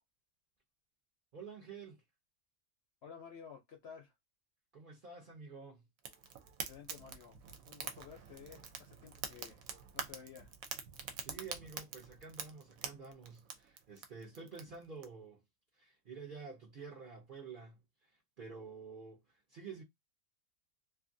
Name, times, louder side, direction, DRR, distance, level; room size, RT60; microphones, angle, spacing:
voice 1, 1.3-2.0 4.7-5.8 11.2-15.4 15.7-19.8, right 5 dB, 50° right, 0.6 m, -50 dB
voice 2, 3.0-4.1 6.6-7.4 7.7-9.6 9.9-10.5, left 7 dB, 60° left, 0.7 m, -53 dB
Fire, 6.0-15.1, right 7 dB, 70° right, 1.0 m, -46 dB
2.6 x 2.5 x 2.5 m
omnidirectional pair, 1.6 m